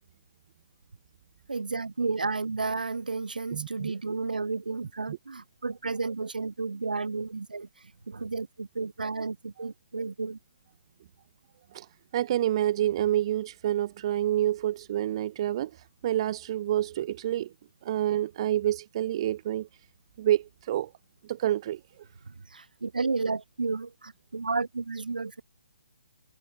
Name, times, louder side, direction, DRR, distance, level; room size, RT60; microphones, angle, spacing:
voice 1, 1.5-10.4 22.2-25.4, right 4 dB, 80° right, 6.6 m, -32 dB
voice 2, 3.5-3.9 5.1-5.2 11.7-11.9 12.1-17.5 17.8-19.7 20.2-20.9 21.3-21.8, right 12 dB, 35° right, 1.4 m, -28 dB
hypercardioid pair, 150°, 5 cm